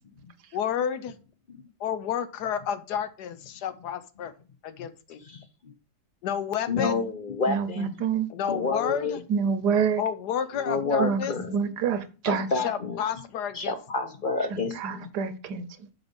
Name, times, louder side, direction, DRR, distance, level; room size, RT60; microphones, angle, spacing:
voice 1, 0.5-1.1 1.8-4.3 4.6-5.2 6.2-6.9 8.3-9.2 10.0-11.3 12.6-13.7, left 8 dB, 80° left, 1.4 m, -30 dB
voice 2, 5.2-5.7 6.7-8.0 8.5-9.2 10.5-11.6 12.3-13.0 13.5-15.1, left 3 dB, 40° left, 0.8 m, -30 dB
voice 3, 7.5-8.3 9.3-10.0 11.0-12.5 14.8-15.9, right 6 dB, 85° right, 1.5 m, -27 dB
7.1 x 5.9 x 5.3 m
omnidirectional pair, 1.7 m